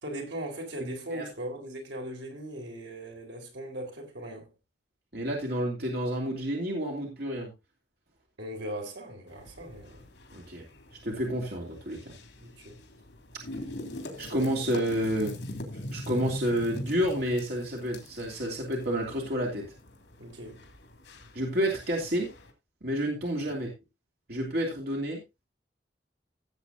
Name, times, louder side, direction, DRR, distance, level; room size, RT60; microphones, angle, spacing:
voice 1, 0.0-4.5 8.4-10.1 12.4-12.8 20.2-20.6 23.5-23.6, right 1 dB, 80° right, 3.9 m, -39 dB
voice 2, 0.8-1.2 5.1-7.5 10.3-10.6 11.0-12.1 14.2-15.3 15.9-19.6 21.3-22.3 22.8-23.7 24.3-25.2, equal, 60° right, 3.0 m, -30 dB
sound 1, 9.3-22.5, left 1 dB, 75° left, 3.0 m, -43 dB
16.5 x 8.0 x 2.7 m
head